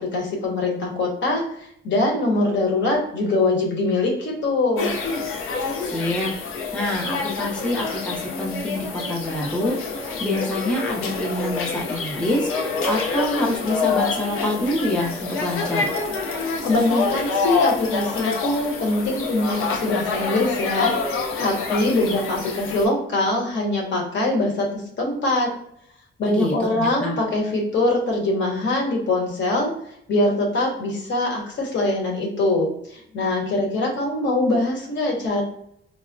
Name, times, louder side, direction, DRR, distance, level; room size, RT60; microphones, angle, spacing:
voice 1, 0.0-1.4 1.8-5.0 16.6-25.5 26.2-29.7 30.1-35.4, left 2 dB, 60° left, -2 dB, 0.9 m, -23 dB
sound 1, 4.8-22.9, left 4 dB, 85° left, 0.6 m, -27 dB
voice 2, 5.8-6.3 6.7-15.9 26.2-27.2, left 1 dB, 5° left, -3 dB, 0.6 m, -26 dB
4.2 x 2.0 x 2.5 m, 0.70 s
cardioid pair, 100°, 21 cm